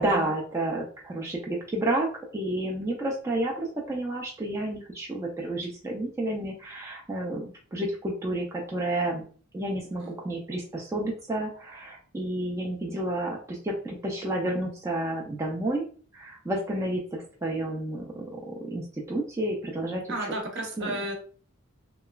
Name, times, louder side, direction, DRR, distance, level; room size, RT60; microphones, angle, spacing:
voice 1, 0.0-9.2 9.5-15.9 16.1-20.3 20.8-21.0, right 1 dB, 15° right, -2 dB, 0.4 m, -30 dB
voice 2, 20.1-21.1, right 1 dB, 60° right, 0 dB, 0.8 m, -33 dB
2.9 x 2.3 x 2.2 m, 0.42 s
head